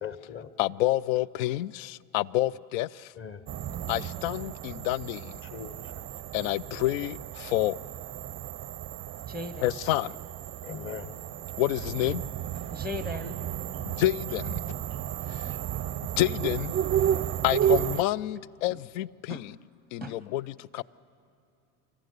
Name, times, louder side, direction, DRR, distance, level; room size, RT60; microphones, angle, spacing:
voice 1, 0.0-0.5 3.2-3.4 5.5-5.8 10.6-11.1, left 7 dB, 30° left, 1.2 m, -39 dB
voice 2, 0.6-3.1 3.9-5.3 6.3-7.8 9.6-10.2 11.6-12.2 13.8-14.6 15.3-15.5 16.2-16.7 17.4-19.6 19.9-20.8, left 16 dB, 65° left, 0.5 m, -28 dB
sound 1, 3.5-18.0, right 11 dB, 30° right, 0.5 m, -32 dB
voice 3, 3.7-4.1 9.2-9.7 12.7-13.4 15.4-15.6 19.3-19.4 20.0-20.2, left 2 dB, ahead, 0.7 m, -38 dB
25.0 x 15.0 x 8.2 m
hypercardioid pair, 85°, 43 cm